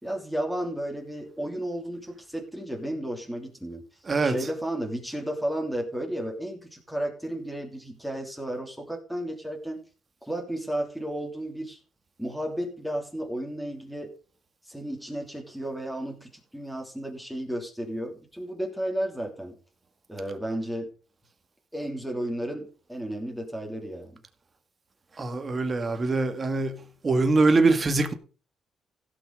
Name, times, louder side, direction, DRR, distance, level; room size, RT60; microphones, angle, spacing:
voice 1, 0.0-3.8 4.2-9.8 10.2-11.8 12.2-14.1 14.6-19.6 20.1-20.9 21.7-24.2, right 1 dB, ahead, 3.1 m, -33 dB
voice 2, 25.2-26.7 27.0-28.1, right 3 dB, 30° right, 1.9 m, -23 dB
16.0 x 6.2 x 5.3 m
cardioid pair, 90°, 0 cm